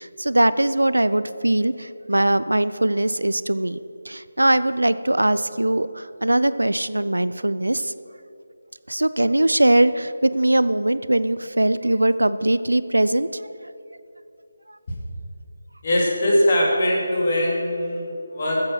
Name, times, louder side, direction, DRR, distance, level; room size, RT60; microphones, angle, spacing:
voice 1, 0.0-7.9 8.9-13.4 14.7-14.8, right 1 dB, 75° right, 15 dB, 0.4 m, -21 dB
voice 2, 15.8-18.6, left 1 dB, 40° left, -2 dB, 2.9 m, -21 dB
14.0 x 7.6 x 6.0 m, 2.7 s
figure-of-eight pair, 155°, 0 cm